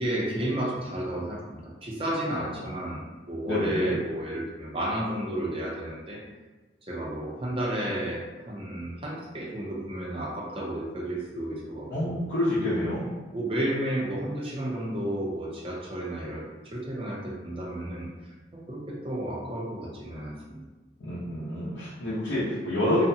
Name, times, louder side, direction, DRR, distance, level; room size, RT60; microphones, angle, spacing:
voice 1, 0.0-6.2 6.9-12.2 13.3-18.1 18.5-20.6, right 1 dB, 30° right, -4 dB, 0.5 m, -32 dB
voice 2, 2.3-2.7 3.5-4.0 11.9-13.1 21.0-23.0, left 1 dB, 85° left, -10 dB, 0.6 m, -28 dB
2.4 x 2.1 x 2.7 m, 1.2 s
head